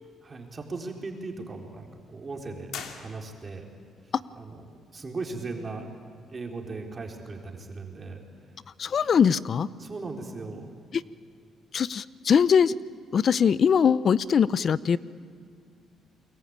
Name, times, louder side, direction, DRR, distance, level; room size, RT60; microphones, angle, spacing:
voice 1, 0.2-2.7 3.0-3.6 4.3-4.7 4.9-5.9 6.3-8.2 9.8-10.7, right 3 dB, 35° right, 2 dB, 4.1 m, -37 dB
sound 1, 2.7-3.7, left 7 dB, 75° left, 2.6 m, -41 dB
voice 2, 8.8-9.7 10.9-11.0 11.7-12.7 13.1-15.0, left 7 dB, 50° left, 18 dB, 0.7 m, -21 dB
29.5 x 22.5 x 8.9 m, 2.2 s
cardioid pair, 90°, 0 cm